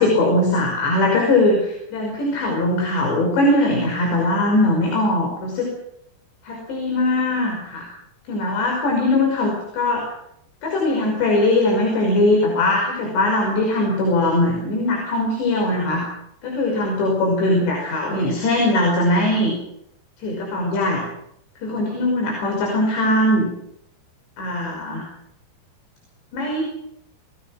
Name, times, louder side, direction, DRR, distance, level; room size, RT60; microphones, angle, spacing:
voice 1, 0.0-5.7 6.5-7.9 8.3-10.0 10.6-16.0 16.4-19.5 20.2-21.0 21.6-23.5 24.4-25.0 26.3-26.6, left 1 dB, 75° left, 0 dB, 7.9 m, -20 dB
29.0 x 20.0 x 5.9 m, 0.75 s
omnidirectional pair, 5.0 m